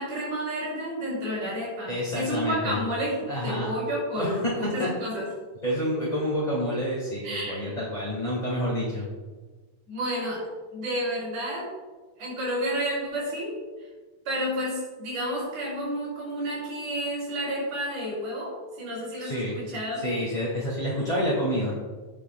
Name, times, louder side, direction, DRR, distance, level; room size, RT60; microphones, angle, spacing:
voice 1, 0.0-5.3 7.2-7.7 9.9-10.4 10.7-11.7 12.2-13.9 14.2-20.0, equal, 55° right, -8 dB, 4.1 m, -31 dB
voice 2, 1.9-2.8 3.3-3.7 4.1-4.3 4.8-4.9 5.6-9.1 19.2-19.5 20.0-21.7, equal, 25° left, -6 dB, 1.0 m, -28 dB
15.5 x 6.0 x 2.3 m, 1.3 s
omnidirectional pair, 3.7 m